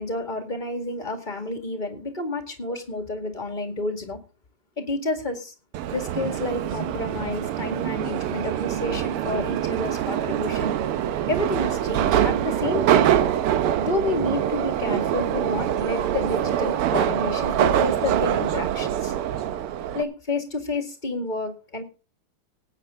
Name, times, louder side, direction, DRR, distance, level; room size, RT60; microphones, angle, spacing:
voice 1, 0.0-4.2 4.8-5.5 5.9-10.7 11.3-13.3 13.8-19.1 19.9-21.8, left 2 dB, 20° left, 5 dB, 2.0 m, -30 dB
Subway metro underground, 5.7-20.0, right 10 dB, 85° right, 1.8 m, -24 dB
18.0 x 9.0 x 3.7 m, 0.33 s
omnidirectional pair, 2.4 m